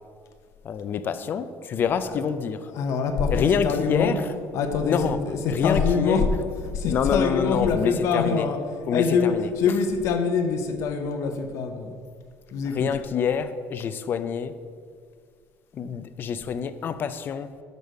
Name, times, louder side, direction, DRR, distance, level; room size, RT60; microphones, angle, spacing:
voice 1, 0.6-2.6 3.3-4.2 4.8-5.2 5.5-6.3 6.9-8.5 8.9-9.5 12.7-14.5 15.7-17.5, left 7 dB, 35° left, 12 dB, 0.4 m, -26 dB
voice 2, 2.7-4.2 4.5-6.3 6.6-8.6 8.9-12.0 12.5-12.9, left 5 dB, 60° left, 7 dB, 0.8 m, -24 dB
6.3 x 5.2 x 6.4 m, 2.1 s
cardioid pair, 160°, 6 cm